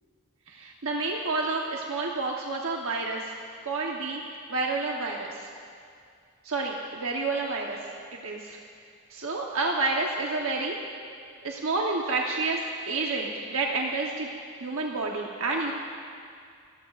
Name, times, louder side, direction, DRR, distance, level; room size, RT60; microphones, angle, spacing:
voice 1, 0.5-3.3 3.6-4.2 4.5-5.5 6.4-7.8 8.2-8.6 9.1-10.7 11.4-14.3 14.6-15.7, right 3 dB, 75° right, -1 dB, 1.1 m, -29 dB
29.0 x 14.5 x 2.5 m, 2.3 s
head